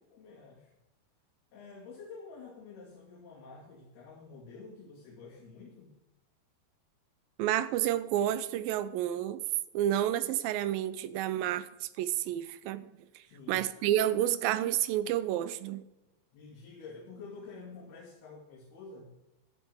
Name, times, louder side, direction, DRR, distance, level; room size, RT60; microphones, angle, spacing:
voice 1, 0.1-0.7 1.5-5.9 13.3-13.6 16.3-19.1, left 4 dB, 75° left, -5 dB, 4.8 m, -49 dB
voice 2, 7.4-9.4 9.7-15.8, right 12 dB, 80° right, 14 dB, 2.2 m, -30 dB
15.5 x 11.0 x 3.7 m, 0.94 s
omnidirectional pair, 4.5 m